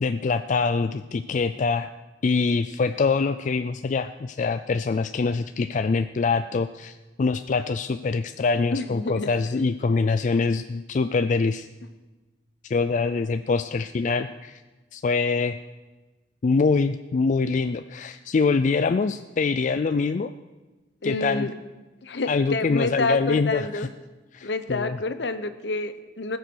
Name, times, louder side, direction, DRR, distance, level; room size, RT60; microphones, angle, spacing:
voice 1, 0.0-1.9 2.2-11.7 12.6-14.6 14.9-15.6 16.4-20.3 21.0-21.5 22.3-23.9 24.3-25.0, left 4 dB, 45° left, 10 dB, 0.4 m, -24 dB
voice 2, 8.7-9.3 21.0-21.5 22.0-23.9 24.4-26.4, left 2 dB, 70° left, 10 dB, 0.9 m, -28 dB
19.5 x 6.8 x 6.3 m, 1.2 s
head